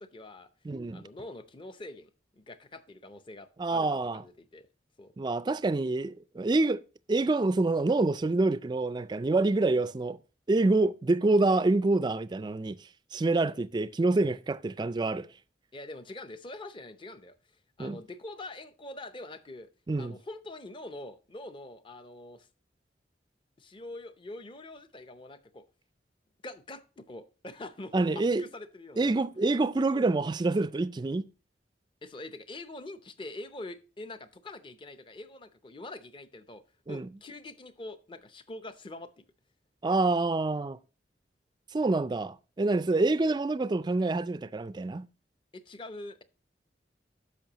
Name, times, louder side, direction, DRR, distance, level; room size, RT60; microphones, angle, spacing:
voice 1, 0.0-0.5 0.9-4.7 5.0-5.1 9.7-9.8 15.7-19.7 20.0-22.5 23.6-25.7 26.4-29.1 32.0-36.6 36.9-39.2 45.5-46.2, left 2 dB, 30° left, 0.6 m, -44 dB
voice 2, 0.7-1.0 3.6-4.2 5.2-6.8 7.1-10.2 10.5-12.8 13.1-15.3 17.8-18.0 19.9-20.2 27.9-28.4 29.0-31.3 36.9-37.1 39.8-40.8 41.7-45.1, right 2 dB, 25° right, 0.3 m, -27 dB
10.5 x 6.7 x 2.9 m
head